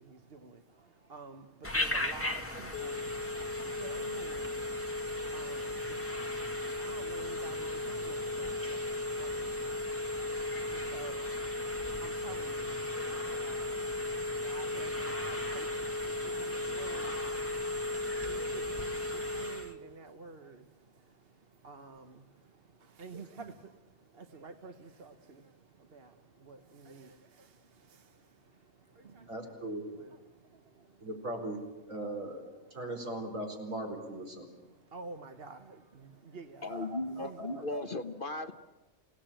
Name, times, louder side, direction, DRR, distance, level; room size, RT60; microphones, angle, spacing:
voice 1, 0.0-29.4 29.9-31.1 32.6-32.9 34.6-36.8 37.2-37.7, right 4 dB, 45° right, 7 dB, 1.2 m, -51 dB
Telephone, 1.6-19.7, left 2 dB, 10° left, 1.9 m, -35 dB
voice 2, 29.3-29.8 31.0-31.6 31.9-32.4 32.7-34.6 36.7-37.8, right 1 dB, 70° right, 2 dB, 4.8 m, -39 dB
voice 3, 36.6-38.5, left 2 dB, 40° left, 8 dB, 1.1 m, -36 dB
28.0 x 17.5 x 8.9 m, 1.2 s
omnidirectional pair, 1.4 m